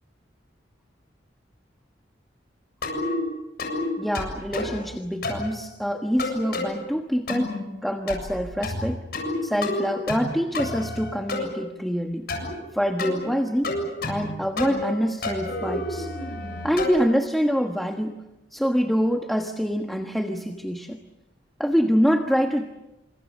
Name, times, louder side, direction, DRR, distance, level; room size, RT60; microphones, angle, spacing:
sound 1, 2.8-3.2 3.6-3.8 4.1-4.8 5.2-5.5 6.2-6.7 7.3-7.6 8.1-8.4 8.6-9.3 9.6-10.3 10.5-11.5 12.3-12.5 13.0-13.2 13.6-14.3 14.6-14.9 15.2-17.0, left 2 dB, 55° left, 7.5 m, -29 dB
voice 1, 4.0-7.5 7.8-9.0 9.4-12.3 12.7-13.8 14.1-16.1 16.6-18.2 18.5-21.0 21.6-22.6, equal, ahead, 4 dB, 1.3 m, -25 dB
29.0 x 27.0 x 6.6 m, 0.96 s
head